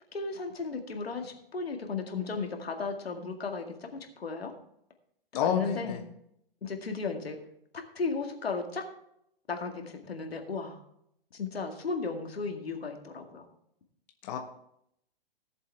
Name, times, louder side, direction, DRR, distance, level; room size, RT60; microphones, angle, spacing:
voice 1, 0.1-4.5 5.5-6.0 6.6-7.4 7.9-8.9 9.5-10.8 11.3-13.5, left 4 dB, 90° left, 4 dB, 2.1 m, -35 dB
voice 2, 5.3-6.0 14.2-14.4, left 8 dB, 45° left, 4 dB, 1.4 m, -29 dB
17.5 x 7.5 x 3.5 m, 0.75 s
hypercardioid pair, 130°, 30 cm